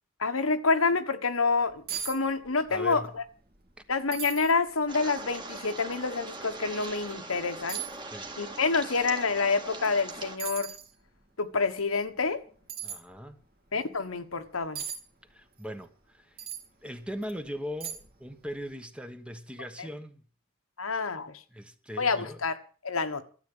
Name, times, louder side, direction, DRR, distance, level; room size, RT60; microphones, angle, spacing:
voice 1, 0.2-3.2 3.9-7.8 8.4-10.7 11.4-12.4 13.7-14.8 20.8-21.4 22.0-22.6 22.8-23.2, left 4 dB, 80° left, 1.5 m, -28 dB
sound 1, 1.5-1.6 1.9-2.2 2.4-3.0 3.4-3.5 4.1-4.5 5.2-5.3 6.8-6.9 7.7-8.0 9.8-10.0 10.4-10.9 12.7-13.0 14.7-15.0 16.4-16.7 17.2-17.3 17.8-18.2 18.5-18.6, right 8 dB, 50° right, 2.7 m, -37 dB
voice 2, 2.7-3.1 8.1-8.3 12.8-13.4 15.3-16.4 16.8-20.2 21.5-22.4, equal, 5° right, 1.2 m, -40 dB
sound 2, 4.9-10.4, right 3 dB, 20° right, 2.0 m, -41 dB
13.0 x 8.2 x 8.9 m
head